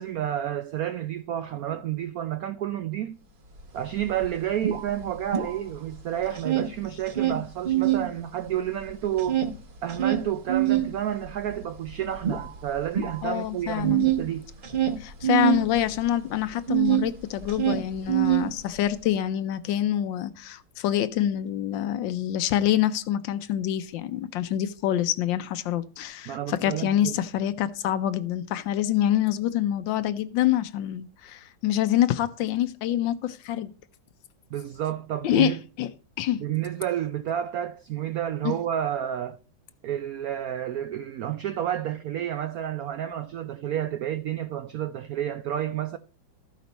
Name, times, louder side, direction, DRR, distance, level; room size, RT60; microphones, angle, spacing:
voice 1, 0.0-3.2 3.7-9.4 9.8-14.5 26.3-27.2 34.5-35.6 36.4-39.4 39.8-46.0, right 11 dB, 85° right, 0.8 m, -30 dB
sound 1, 3.6-3.7 3.9-5.9 6.2-8.1 8.5-17.1 17.4-18.9, right 12 dB, 45° right, 0.6 m, -26 dB
voice 2, 13.2-14.1 15.0-33.7 35.2-35.9 36.2-36.4 38.4-38.5, left 11 dB, 75° left, 1.3 m, -26 dB
13.5 x 5.2 x 4.0 m
omnidirectional pair, 2.2 m